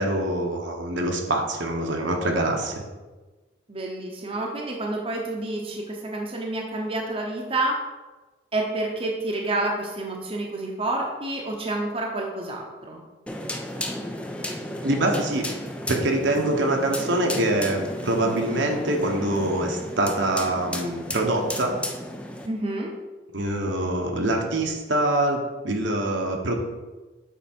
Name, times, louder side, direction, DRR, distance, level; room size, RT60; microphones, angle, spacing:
voice 1, 0.0-2.8 14.8-15.5 15.9-21.7 23.3-26.6, right 1 dB, 70° right, 2 dB, 1.0 m, -24 dB
voice 2, 3.7-7.7 8.5-13.0 22.5-22.9, right 2 dB, 30° right, -1 dB, 0.7 m, -29 dB
sound 1, 13.3-22.5, left 1 dB, 5° left, 0.3 m, -33 dB
8.1 x 3.5 x 4.3 m, 1.2 s
head